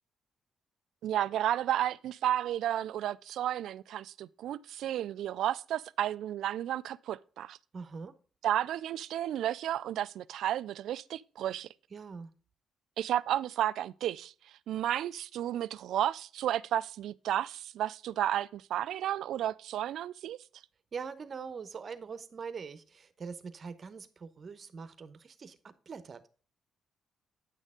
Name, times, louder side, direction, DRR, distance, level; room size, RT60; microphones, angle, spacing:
voice 1, 1.0-7.6 8.4-11.7 13.0-14.3 14.7-20.4, right 11 dB, 75° right, 0.3 m, -32 dB
voice 2, 7.7-8.1 11.9-12.3 20.9-26.2, right 5 dB, 45° right, 0.9 m, -43 dB
9.1 x 6.5 x 3.6 m
cardioid pair, 90°, 0 cm